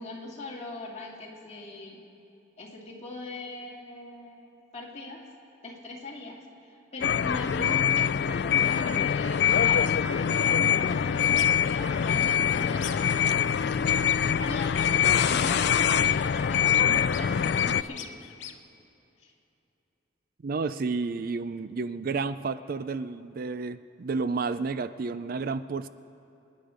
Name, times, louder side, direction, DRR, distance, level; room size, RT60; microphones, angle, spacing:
voice 1, 0.0-2.0 2.6-5.2 5.6-6.4 6.7-18.1 19.2-19.3, left 2 dB, 35° left, -2 dB, 2.2 m, -40 dB
sound 1, 7.0-17.8, left 8 dB, 60° left, 0.3 m, -24 dB
sound 2, 10.9-11.5 11.8-13.2 13.5-15.4 15.8-18.5, left 10 dB, 85° left, 0.8 m, -44 dB
voice 2, 20.4-25.9, right 4 dB, 50° right, 14 dB, 0.4 m, -31 dB
26.5 x 9.7 x 5.1 m, 2.8 s
head